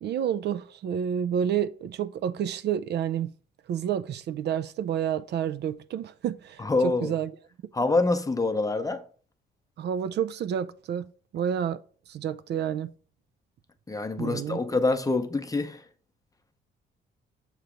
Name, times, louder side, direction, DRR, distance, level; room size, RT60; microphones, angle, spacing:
voice 1, 0.0-3.3 3.7-7.4 9.8-11.8 12.1-12.9 14.2-14.6, right 9 dB, 60° right, 0.4 m, -29 dB
voice 2, 6.6-7.1 7.7-9.0 13.9-15.8, left 3 dB, 15° left, 0.7 m, -26 dB
6.7 x 3.0 x 4.9 m
cardioid pair, 90°, 20 cm